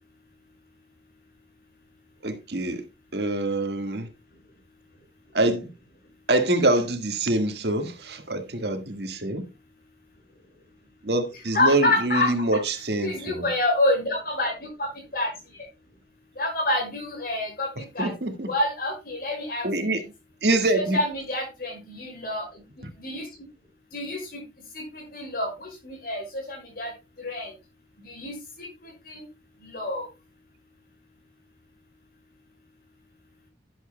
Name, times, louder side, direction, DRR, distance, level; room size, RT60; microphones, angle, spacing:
voice 1, 2.2-2.8 3.1-4.1 5.3-5.7 6.3-9.4 11.0-13.5 18.0-18.5 19.6-20.0 20.4-21.0, right 2 dB, 65° right, 1.7 m, -25 dB
voice 2, 11.5-12.6 13.0-14.5 14.8-15.3 16.4-17.7 17.9-18.1 18.5-19.7 20.7-22.5 23.0-23.3 23.9-24.4 24.7-26.9 27.2-27.5 28.0-28.7 29.1-29.2 29.6-30.0, left 2 dB, 55° left, 5.6 m, -27 dB
12.0 x 11.0 x 2.2 m
head